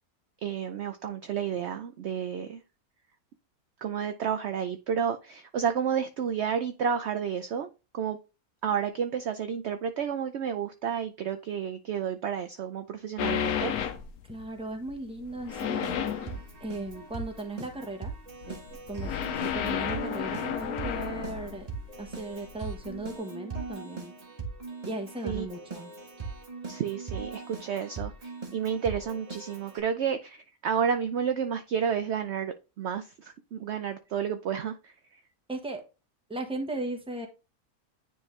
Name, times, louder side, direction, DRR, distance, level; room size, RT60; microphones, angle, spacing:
voice 1, 0.4-2.6 3.8-8.2 8.6-13.7 25.2-25.5 26.7-35.2, right 7 dB, 65° right, 9 dB, 0.7 m, -31 dB
sound 1, 13.2-14.5 14.9-17.2 17.7-18.1 18.4-22.2 22.4-23.0, left 9 dB, 80° left, 1.2 m, -32 dB
voice 2, 14.3-15.8 16.6-18.1 18.4-18.6 18.9-21.7 22.0-24.1 24.8-25.9 35.5-35.8 36.3-37.3, right 2 dB, 5° right, 4 dB, 1.0 m, -37 dB
Keyboard (musical), 15.5-29.8, right 4 dB, 30° right, 1.2 m, -40 dB
9.7 x 3.6 x 3.2 m, 0.30 s
omnidirectional pair, 1.6 m